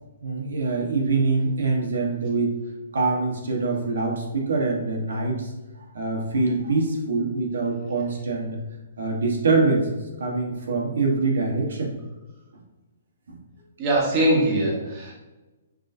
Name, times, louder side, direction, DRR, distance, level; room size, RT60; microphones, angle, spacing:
voice 1, 0.2-2.6 2.9-5.5 5.9-8.6 9.0-12.0 13.3-13.4, right 3 dB, 80° right, 1 dB, 1.0 m, -24 dB
voice 2, 13.8-15.1, right 1 dB, 25° right, -4 dB, 1.0 m, -22 dB
6.1 x 2.6 x 2.5 m, 1.1 s
hypercardioid pair, 170°, 0 cm